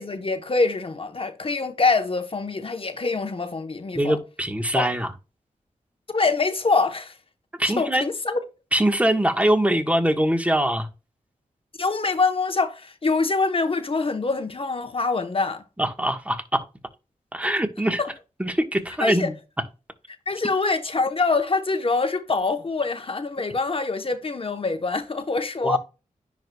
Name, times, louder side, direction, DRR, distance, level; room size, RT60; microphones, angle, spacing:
voice 1, 0.0-4.2 4.7-4.8 6.1-7.1 7.8-8.4 11.8-15.6 18.0-18.1 19.0-19.3 20.3-25.8, left 3 dB, 40° left, 1.0 m, -24 dB
voice 2, 3.9-5.1 7.6-8.0 8.7-10.9 15.8-16.6 17.3-18.0 18.4-19.3 25.6-25.8, right 1 dB, 10° right, 1.3 m, -22 dB
10.0 x 4.7 x 2.3 m
wide cardioid pair, 70°, 14 cm